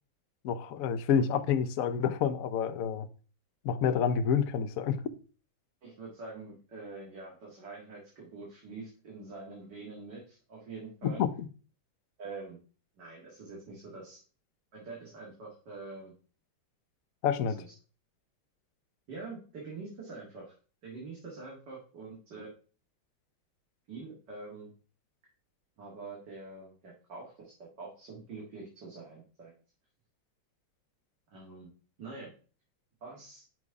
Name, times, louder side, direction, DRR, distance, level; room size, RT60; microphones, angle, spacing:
voice 1, 0.4-3.1 3.6-5.0 11.2-11.3 17.2-17.6, left 7 dB, 65° left, 0.8 m, -28 dB
voice 2, 5.8-11.2 12.2-12.6 13.0-14.2 14.7-16.1 17.4-17.7 19.1-20.5 20.8-22.5 23.9-24.7 25.8-29.5 31.3-31.7 32.0-32.3 33.0-33.4, right 3 dB, 60° right, 2.5 m, -45 dB
6.2 x 5.4 x 4.7 m
omnidirectional pair, 2.2 m